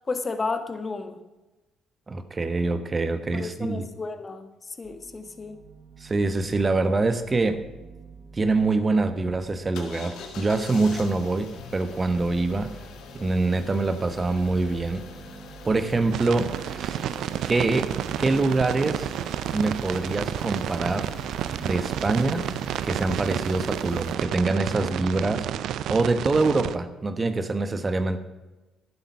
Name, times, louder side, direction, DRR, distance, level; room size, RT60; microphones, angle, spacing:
voice 1, 0.1-1.2 3.3-4.5 4.8-5.6, left 3 dB, 35° left, 9 dB, 1.4 m, -32 dB
voice 2, 2.1-3.9 6.0-7.6 8.3-12.7 13.1-15.0 15.6-17.1 17.4-17.9 18.2-19.1 19.5-21.1 21.6-22.5 22.8-25.5 25.9-28.2, right 3 dB, 30° right, 10 dB, 1.3 m, -25 dB
sound 1, 4.8-24.6, right 5 dB, 55° right, 1.3 m, -46 dB
sound 2, 9.7-24.1, left 6 dB, 75° left, 1.8 m, -44 dB
sound 3, 16.1-26.8, right 11 dB, 70° right, 0.5 m, -31 dB
11.5 x 9.4 x 5.8 m, 1.1 s
supercardioid pair, 60°, 0 cm